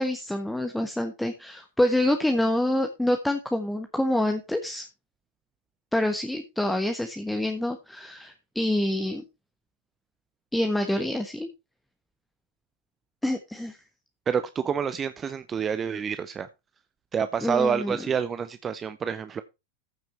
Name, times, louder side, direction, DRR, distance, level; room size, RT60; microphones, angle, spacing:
voice 1, 0.0-4.9 5.9-9.2 10.5-11.5 13.2-13.8 17.4-18.0, left 1 dB, 5° left, 5 dB, 1.3 m, -26 dB
voice 2, 14.3-16.5 17.1-19.4, right 7 dB, 20° right, 12 dB, 0.7 m, -28 dB
14.5 x 5.9 x 4.3 m, 0.26 s
figure-of-eight pair, 90°, 0 cm